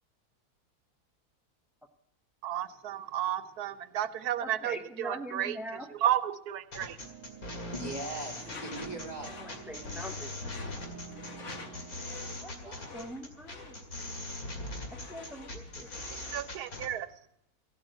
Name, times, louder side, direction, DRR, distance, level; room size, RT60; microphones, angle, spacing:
voice 1, 2.4-7.0 16.1-17.1, right 11 dB, 85° right, 13 dB, 1.3 m, -33 dB
voice 2, 4.4-5.9 9.4-10.6 12.4-13.7 15.1-15.9, equal, ahead, 4 dB, 0.3 m, -43 dB
sound 1, 6.7-16.9, left 2 dB, 70° left, 2.8 m, -41 dB
sound 2, 7.0-12.4, right 8 dB, 60° right, 1.4 m, -50 dB
voice 3, 7.7-9.3 12.4-13.0, right 2 dB, 25° left, -1 dB, 3.2 m, -40 dB
Door / Screech, 8.3-16.5, left 3 dB, 55° left, 1.7 m, -48 dB
16.0 x 8.0 x 8.1 m, 0.75 s
omnidirectional pair, 1.6 m